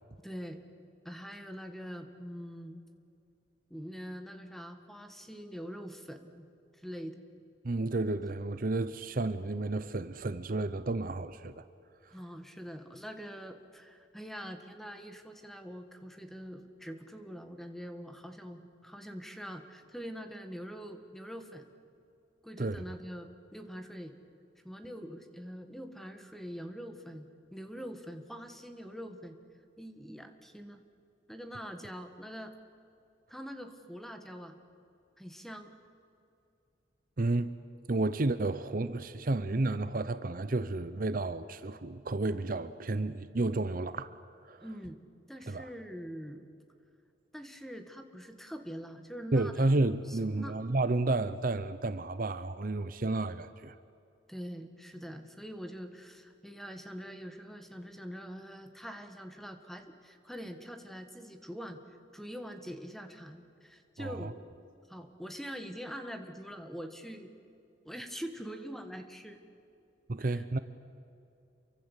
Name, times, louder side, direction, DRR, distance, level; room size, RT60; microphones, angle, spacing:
voice 1, 0.2-0.6 1.0-2.8 3.7-6.5 6.7-7.2 12.1-21.7 22.4-24.1 24.6-29.4 29.8-30.8 31.3-32.5 33.3-34.6 35.2-35.7 44.6-46.5 47.3-49.7 50.1-50.6 54.3-64.3 64.9-67.3 67.8-69.4 70.2-70.4, equal, ahead, 1.7 m, -44 dB
voice 2, 7.6-11.6 22.6-22.8 37.2-37.5 37.9-44.2 44.5-44.6 45.5-45.6 49.3-53.7 64.0-64.3 70.1-70.6, right 2 dB, 45° right, 0.7 m, -31 dB
28.5 x 23.5 x 8.3 m
head